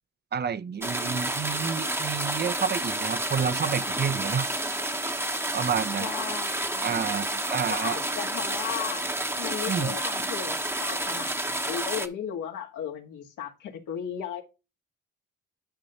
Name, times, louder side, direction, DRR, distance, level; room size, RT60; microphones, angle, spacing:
voice 1, 0.3-4.6 5.5-6.1 6.8-8.0 9.7-10.0, right 7 dB, 35° right, 0.7 m, -29 dB
sound 1, 0.8-12.1, right 1 dB, 10° right, 1.0 m, -30 dB
voice 2, 5.8-7.1 7.7-9.0 9.4-14.4, left 9 dB, 85° left, 1.8 m, -36 dB
10.0 x 5.3 x 2.9 m
cardioid pair, 90°, 30 cm